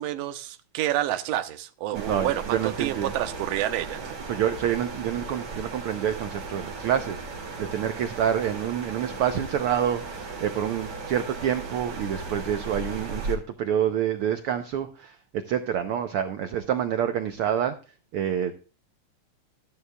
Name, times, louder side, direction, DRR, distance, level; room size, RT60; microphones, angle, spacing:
voice 1, 0.0-4.1, right 13 dB, 70° right, 1.8 m, -29 dB
sound 1, 1.9-13.4, right 3 dB, 50° right, 3.2 m, -36 dB
voice 2, 1.9-3.1 4.3-17.7 18.1-18.5, right 9 dB, 90° right, 1.2 m, -27 dB
13.5 x 11.0 x 2.3 m
omnidirectional pair, 3.5 m